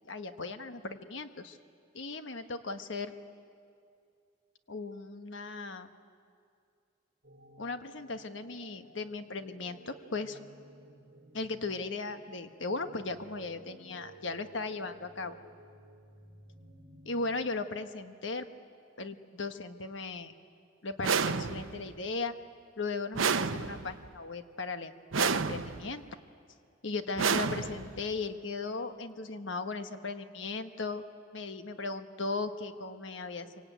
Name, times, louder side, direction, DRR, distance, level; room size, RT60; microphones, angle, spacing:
voice 1, 0.0-1.6 1.9-3.1 4.7-5.9 7.6-10.4 11.3-15.4 17.0-18.5 19.0-20.3 20.8-22.3 22.8-24.9 25.2-26.0 26.8-31.0 31.3-33.5, left 3 dB, 65° left, 8 dB, 1.3 m, -37 dB
sound 1, 7.2-17.4, right 1 dB, 50° right, 5.4 m, -55 dB
sound 2, 21.0-21.9 23.1-24.1 25.1-25.9 27.2-28.1, right 5 dB, 85° right, 0.8 m, -30 dB
26.0 x 24.5 x 9.2 m, 2.3 s
head